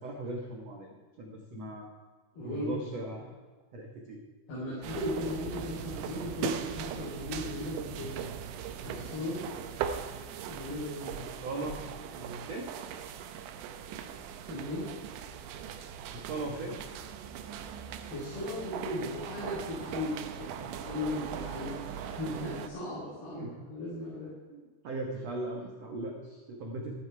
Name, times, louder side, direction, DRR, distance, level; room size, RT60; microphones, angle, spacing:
voice 1, 0.0-2.0 2.4-3.4 3.7-4.2 11.2-11.8 12.5-12.7 16.1-16.8 23.3-23.5 24.5-26.9, right 2 dB, 65° right, 0 dB, 1.6 m, -39 dB
voice 2, 2.3-3.1 4.5-8.2 8.8-9.4 10.5-11.1 12.1-12.4 14.5-14.9 18.1-24.3, left 1 dB, 60° left, -7 dB, 6.1 m, -37 dB
sound 1, 4.8-22.7, right 8 dB, 80° right, 3.1 m, -40 dB
14.5 x 12.0 x 4.7 m, 1.4 s
omnidirectional pair, 5.2 m